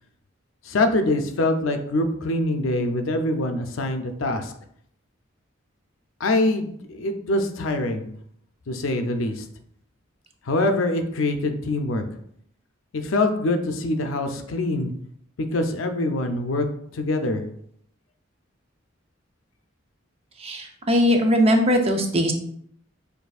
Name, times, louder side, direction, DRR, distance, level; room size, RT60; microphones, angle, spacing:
voice 1, 0.6-4.5 6.2-8.1 8.7-9.4 10.5-12.0 12.9-14.9 15.4-16.7 16.9-17.4, left 2 dB, 80° left, 6 dB, 0.5 m, -24 dB
voice 2, 20.4-22.3, equal, 30° right, 4 dB, 0.5 m, -20 dB
6.6 x 2.6 x 2.4 m, 0.68 s
head